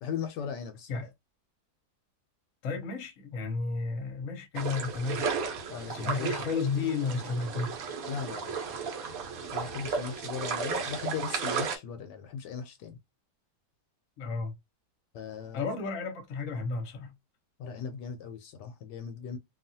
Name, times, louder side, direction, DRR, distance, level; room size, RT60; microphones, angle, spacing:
voice 1, 0.0-1.0 5.7-6.3 8.0-8.5 9.5-13.0 15.1-15.7 17.6-19.4, left 7 dB, 80° left, 1.2 m, -38 dB
voice 2, 2.6-5.3 5.9-7.8 14.2-14.5 15.5-17.1, left 4 dB, 55° left, 1.1 m, -32 dB
sound 1, 4.5-11.8, right 5 dB, 60° right, 1.1 m, -34 dB
2.9 x 2.4 x 2.6 m
omnidirectional pair, 1.9 m